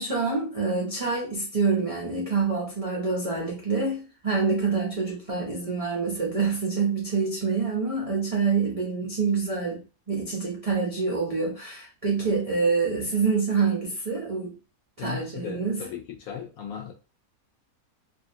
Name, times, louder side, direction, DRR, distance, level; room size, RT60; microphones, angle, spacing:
voice 1, 0.0-14.5 15.0-15.8, right 4 dB, 55° right, 0.4 m, -26 dB
voice 2, 15.0-16.9, left 8 dB, 70° left, 0.9 m, -37 dB
2.7 x 2.4 x 2.7 m
omnidirectional pair, 1.7 m